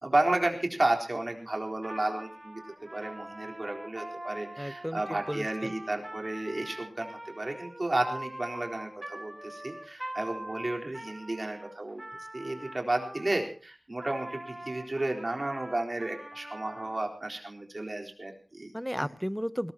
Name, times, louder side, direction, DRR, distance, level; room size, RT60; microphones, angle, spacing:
voice 1, 0.0-2.6 2.9-12.0 12.3-18.7, right 2 dB, 45° right, 2 dB, 4.0 m, -32 dB
Trumpet, 1.8-13.5 14.0-17.0, right 1 dB, 20° right, 6.3 m, -43 dB
voice 2, 4.6-5.7 18.7-19.7, equal, ahead, 16 dB, 0.8 m, -34 dB
20.5 x 19.0 x 3.0 m, 0.38 s
wide cardioid pair, 65°, 0 cm